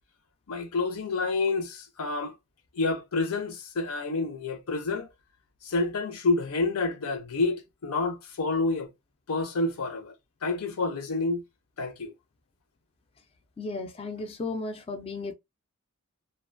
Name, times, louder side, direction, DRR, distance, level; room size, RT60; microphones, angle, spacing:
voice 1, 0.5-2.3 2.7-5.1 5.6-8.9 9.3-10.1 10.4-11.4 11.8-12.1, left 3 dB, 85° left, 0.6 m, -28 dB
voice 2, 13.6-15.3, left 3 dB, 25° left, 0.3 m, -34 dB
2.5 x 2.2 x 2.4 m
head